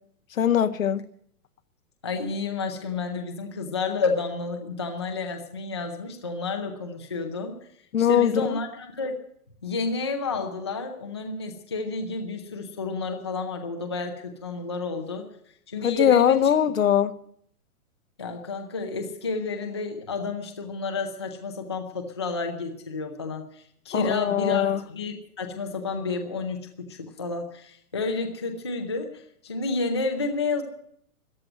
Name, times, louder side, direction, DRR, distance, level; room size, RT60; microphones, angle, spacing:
voice 1, 0.4-1.0 7.9-8.5 15.8-17.1 23.9-24.8, left 9 dB, 60° left, 1.0 m, -21 dB
voice 2, 2.0-7.7 8.0-9.2 9.6-15.3 15.7-16.5 18.2-30.6, left 4 dB, 20° left, 0.5 m, -30 dB
14.0 x 11.0 x 7.7 m
hypercardioid pair, 175°, 45 cm